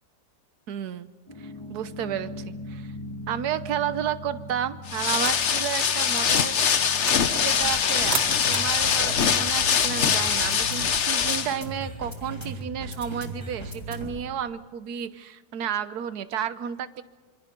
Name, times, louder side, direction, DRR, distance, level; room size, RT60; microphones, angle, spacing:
voice 1, 0.7-1.1 1.4-2.9 3.3-6.6 7.1-17.0, right 9 dB, 70° right, 13 dB, 1.4 m, -32 dB
sound 1, 1.3-14.3, equal, 15° left, 3.3 m, -38 dB
sound 2, 4.9-11.6, left 7 dB, 50° left, 1.1 m, -23 dB
sound 3, 5.2-10.7, right 6 dB, 45° right, 1.2 m, -39 dB
26.5 x 25.0 x 5.3 m, 1.3 s
omnidirectional pair, 1.8 m